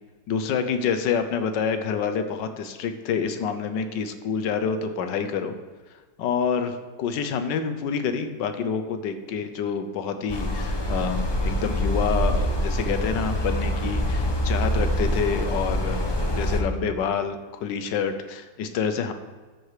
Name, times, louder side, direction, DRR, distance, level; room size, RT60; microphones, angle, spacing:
voice 1, 0.3-5.5 6.2-19.1, left 6 dB, 75° left, 9 dB, 1.4 m, -27 dB
sound 1, 10.3-16.6, equal, 40° left, 0.3 m, -25 dB
13.0 x 4.8 x 4.8 m, 1.4 s
omnidirectional pair, 2.0 m